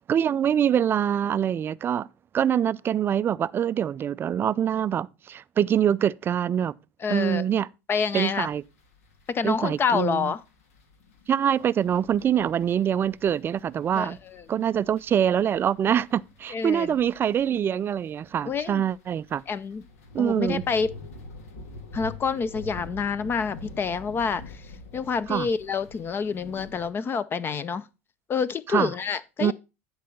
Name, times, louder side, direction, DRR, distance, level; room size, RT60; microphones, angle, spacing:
voice 1, 0.1-2.1 2.3-6.7 7.1-7.7 8.1-8.6 9.4-10.3 11.3-14.2 14.5-19.4 20.1-20.6 25.3-25.5 28.7-28.9 29.4-29.5, right 9 dB, 30° right, 0.3 m, -24 dB
voice 2, 7.0-7.4 7.9-8.5 9.3-10.4 13.9-14.4 16.5-16.9 18.5-18.8 19.5-19.8 20.2-20.9 21.9-24.7 24.9-27.9 28.3-29.5, left 6 dB, 30° left, 0.5 m, -27 dB
sound 1, 8.4-26.9, left 3 dB, 80° left, 1.8 m, -46 dB
10.5 x 4.6 x 5.3 m
hypercardioid pair, 95°, 8 cm